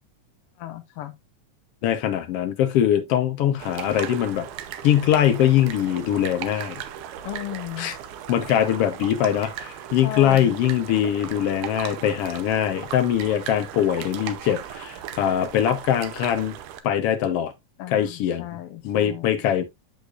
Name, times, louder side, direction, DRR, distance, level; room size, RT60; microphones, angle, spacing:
voice 1, 0.6-1.1 7.2-7.9 10.0-10.6 17.8-19.3, left 13 dB, 85° left, 1.3 m, -35 dB
voice 2, 1.8-4.5 4.8-6.8 7.8-7.9 8.3-16.6 16.8-17.5 17.9-18.5 18.8-19.6, left 10 dB, 70° left, 1.5 m, -22 dB
sound 1, 3.6-16.8, right 10 dB, 75° right, 2.3 m, -37 dB
8.2 x 6.6 x 2.5 m
omnidirectional pair, 3.8 m